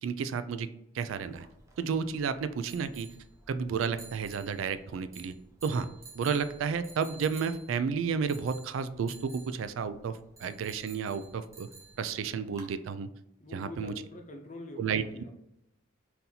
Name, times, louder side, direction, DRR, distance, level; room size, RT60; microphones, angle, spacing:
voice 1, 0.0-0.7 0.9-1.5 1.8-3.1 3.5-5.4 5.6-5.9 6.1-11.7 12.0-13.1 13.5-13.9 14.8-15.0, right 6 dB, 85° right, 12 dB, 0.3 m, -32 dB
sound 1, 1.1-12.7, right 4 dB, 15° right, 0.5 m, -53 dB
voice 2, 13.4-15.4, left 2 dB, 35° left, 3 dB, 0.6 m, -45 dB
4.1 x 2.7 x 3.9 m, 0.83 s
head